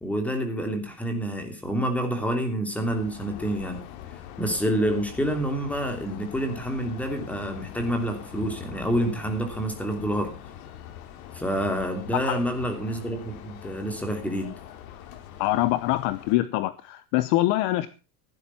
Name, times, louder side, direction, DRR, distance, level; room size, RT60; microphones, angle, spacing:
voice 1, 0.0-3.8 4.4-10.4 11.3-14.5, right 1 dB, 5° left, 5 dB, 3.0 m, -28 dB
sound 1, 2.7-16.4, left 10 dB, 65° left, 2.8 m, -43 dB
voice 2, 15.4-17.9, left 16 dB, 45° left, 14 dB, 0.8 m, -24 dB
16.0 x 10.5 x 5.7 m, 0.34 s
supercardioid pair, 175°, 45 cm